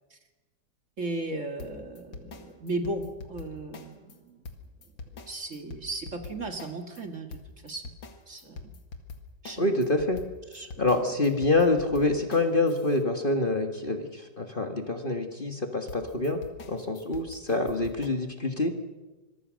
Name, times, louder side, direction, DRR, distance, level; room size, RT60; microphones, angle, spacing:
voice 1, 1.0-4.4 5.1-7.9 8.3-8.8 9.4-9.9 10.5-11.0, right 2 dB, 40° right, 6 dB, 2.2 m, -36 dB
sound 1, 1.6-4.2 4.4-7.0 7.3-13.0 15.9-18.1, left 4 dB, 90° left, 2.8 m, -44 dB
voice 2, 9.6-10.2 10.8-16.4 16.7-18.7, left 2 dB, 30° left, 5 dB, 1.8 m, -26 dB
26.0 x 22.5 x 6.4 m, 1.2 s
omnidirectional pair, 2.0 m